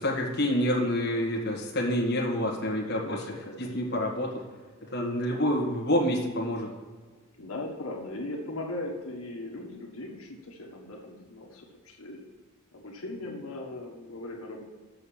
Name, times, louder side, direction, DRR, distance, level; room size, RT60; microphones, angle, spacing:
voice 1, 0.0-4.4 4.8-6.7, left 1 dB, 50° left, -1 dB, 1.7 m, -28 dB
voice 2, 2.5-4.1 7.4-12.2 12.7-14.6, left 2 dB, 85° left, 0 dB, 1.6 m, -39 dB
6.9 x 6.6 x 7.1 m, 1.4 s
head